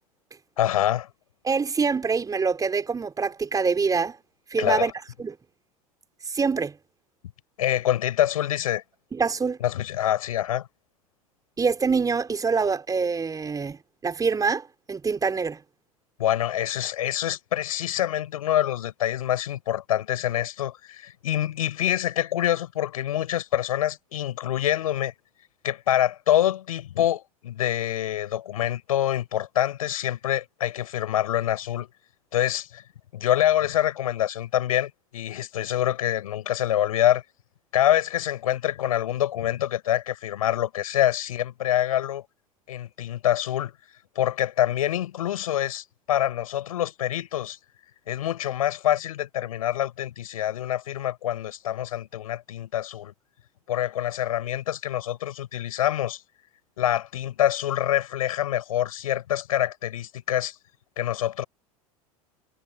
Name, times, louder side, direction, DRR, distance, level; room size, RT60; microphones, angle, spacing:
voice 1, 0.6-1.1 4.6-4.9 7.6-8.8 9.6-10.7 16.2-25.1 25.6-31.9 32.3-32.8 33.1-37.2 37.7-42.2 42.7-43.7 44.2-47.6 48.1-53.1 53.7-56.2 56.8-60.6 61.0-61.4, left 12 dB, 70° left, 7.3 m, -26 dB
voice 2, 1.4-4.1 4.5-4.9 5.2-5.3 6.3-6.7 9.1-9.6 11.6-13.8 14.0-15.6, right 5 dB, 20° right, 4.7 m, -25 dB
figure-of-eight pair, 80°, 19 cm